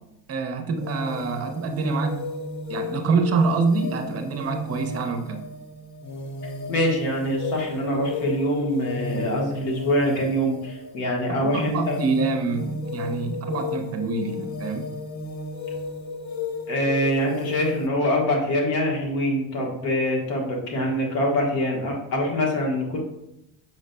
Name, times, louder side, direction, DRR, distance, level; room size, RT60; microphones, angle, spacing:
voice 1, 0.3-2.2 2.7-5.4 11.4-14.9, right 4 dB, 35° right, 6 dB, 0.6 m, -26 dB
sound 1, 0.7-17.9, left 2 dB, 45° left, 0.7 m, -34 dB
voice 2, 6.7-12.0 16.7-23.0, equal, 85° left, -1 dB, 1.4 m, -24 dB
5.9 x 3.9 x 2.2 m, 0.84 s
supercardioid pair, 110°, 40 cm